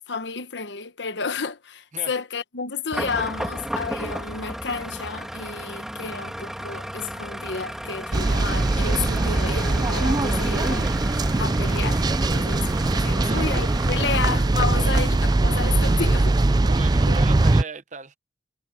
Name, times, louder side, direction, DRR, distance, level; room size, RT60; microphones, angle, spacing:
voice 1, 0.1-12.0 12.3-16.5 17.0-17.1, left 5 dB, 70° left, 1.1 m, -31 dB
sound 1, 2.9-14.4, equal, ahead, 1.7 m, -34 dB
sound 2, 8.1-17.6, right 2 dB, 20° right, 0.4 m, -21 dB
voice 2, 13.1-13.4 14.8-14.9 16.6-18.2, right 4 dB, 40° right, 0.8 m, -37 dB
head